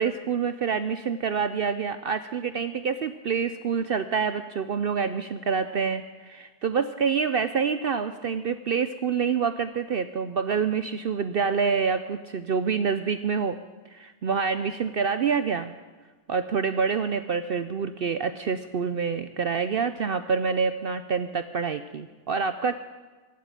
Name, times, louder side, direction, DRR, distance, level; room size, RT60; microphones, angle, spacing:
voice 1, 0.0-13.6 13.9-15.7 16.3-22.7, right 6 dB, 60° right, 10 dB, 0.6 m, -27 dB
15.0 x 8.5 x 8.9 m, 1.3 s
omnidirectional pair, 1.5 m